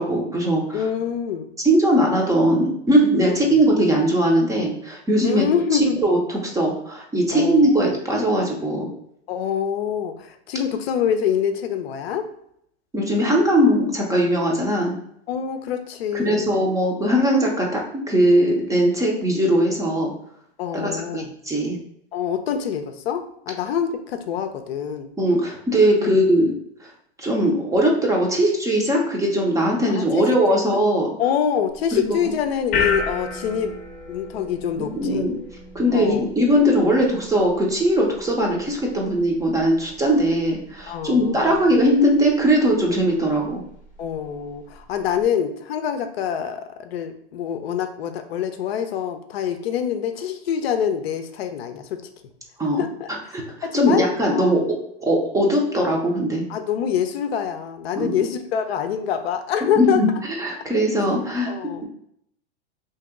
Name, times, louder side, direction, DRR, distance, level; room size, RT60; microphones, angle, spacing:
voice 1, 0.0-0.9 1.6-5.4 5.7-8.9 12.9-15.0 16.1-20.1 20.8-21.8 25.2-26.5 26.8-26.9 27.2-31.1 31.9-32.3 34.8-35.3 35.7-43.6 52.6-52.8 53.3-53.4 53.7-54.6 55.0-56.5 57.9-58.1 59.8-60.1 60.4-61.5, equal, 10° right, -1 dB, 0.5 m, -20 dB
voice 2, 0.7-1.5 3.3-3.6 5.2-6.0 7.3-7.9 9.3-12.2 15.3-16.5 20.6-21.3 22.1-25.1 26.0-26.1 30.0-30.3 30.5-30.6 31.2-33.7 34.1-35.3 35.9-36.2 40.9-41.5 44.0-52.0 52.8-53.1 53.6-54.1 54.3-54.6 56.5-60.0 61.5-61.8, left 8 dB, 70° left, 7 dB, 0.5 m, -25 dB
sound 1, 31.7-45.2, left 4 dB, 25° left, 0.8 m, -35 dB
2.9 x 2.8 x 3.5 m, 0.71 s
hypercardioid pair, 115°, 32 cm